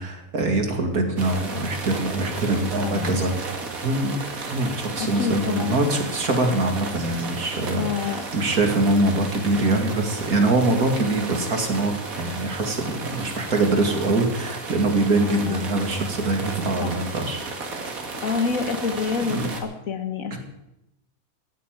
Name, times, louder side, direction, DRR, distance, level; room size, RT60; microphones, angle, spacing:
voice 1, 0.0-3.6 3.8-4.1 4.5-17.4 19.3-19.5 20.3-20.4, right 2 dB, 85° right, 4 dB, 2.8 m, -23 dB
sound 1, 1.2-19.6, right 3 dB, 70° right, 2.4 m, -34 dB
voice 2, 2.8-3.4 5.0-5.8 7.8-8.2 15.2-15.7 16.8-16.9 18.2-20.4, left 5 dB, 65° left, 8 dB, 1.8 m, -27 dB
15.0 x 8.4 x 9.1 m, 0.91 s
omnidirectional pair, 1.5 m